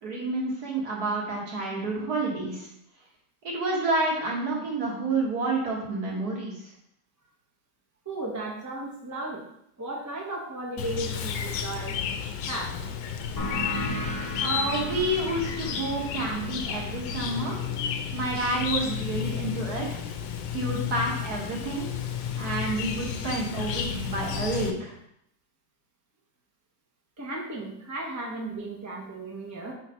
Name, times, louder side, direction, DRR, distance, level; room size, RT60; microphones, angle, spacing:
voice 1, 0.0-2.7 3.4-6.7 14.4-17.6 18.1-20.0 20.5-21.9 22.4-25.0, right 2 dB, 60° right, -2 dB, 1.9 m, -29 dB
voice 2, 8.0-9.4 9.8-12.0 12.5-12.7 27.2-29.7, right 2 dB, 15° right, -2 dB, 0.7 m, -35 dB
Chirp tweet, 10.8-24.7, left 7 dB, 80° left, 1.2 m, -32 dB
sound 1, 13.4-18.6, equal, 20° left, 0.6 m, -37 dB
4.5 x 4.0 x 5.7 m, 0.74 s
omnidirectional pair, 1.9 m